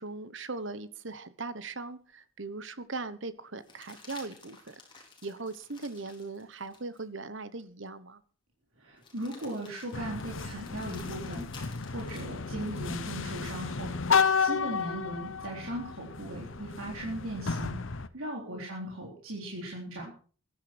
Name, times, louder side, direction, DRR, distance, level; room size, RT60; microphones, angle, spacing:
voice 1, 0.0-4.7 5.2-8.2 18.5-18.7, right 3 dB, 65° right, 14 dB, 1.2 m, -39 dB
sound 1, 2.0-2.1 3.6-7.0 7.6-7.7 9.0-13.1 15.2-16.1, left 4 dB, 25° left, 4.1 m, -54 dB
voice 2, 8.8-11.5 11.8-20.1, right 1 dB, 80° right, -2 dB, 3.8 m, -38 dB
sound 2, 9.9-18.1, left 5 dB, 70° left, 0.9 m, -32 dB
15.0 x 11.5 x 6.1 m, 0.43 s
head